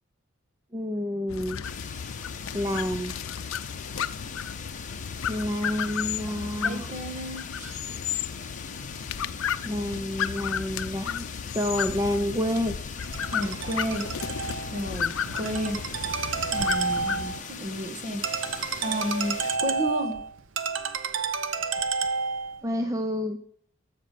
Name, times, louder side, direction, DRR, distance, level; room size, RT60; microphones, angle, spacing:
voice 1, 0.7-1.6 2.5-3.1 5.3-6.9 9.6-11.3 11.5-12.8 22.6-23.4, left 1 dB, 15° right, 6 dB, 0.6 m, -29 dB
sound 1, 1.3-17.4, left 7 dB, 90° left, 0.5 m, -34 dB
sound 2, 1.6-19.6, left 6 dB, 40° left, 1.1 m, -41 dB
voice 2, 6.6-7.8 13.3-14.0 14.7-15.8 16.5-18.2 18.8-20.2, equal, 35° right, 6 dB, 1.6 m, -32 dB
Ringtone, 13.0-22.6, right 5 dB, 75° right, 0.9 m, -31 dB
15.0 x 5.9 x 6.7 m, 0.64 s
head